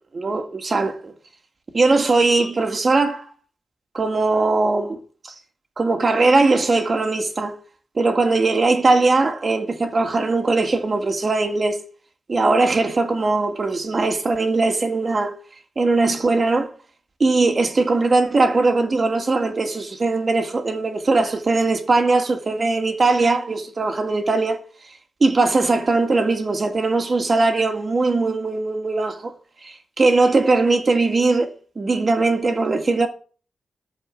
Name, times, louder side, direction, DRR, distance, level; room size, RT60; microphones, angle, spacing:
voice 1, 0.1-1.1 1.7-3.3 3.9-5.3 5.8-7.6 8.0-11.8 12.3-15.3 15.8-16.7 17.2-24.6 25.2-29.3 29.6-33.1, right 3 dB, 40° right, 2.0 m, -20 dB
14.0 x 5.0 x 8.4 m
wide cardioid pair, 110°, 0 cm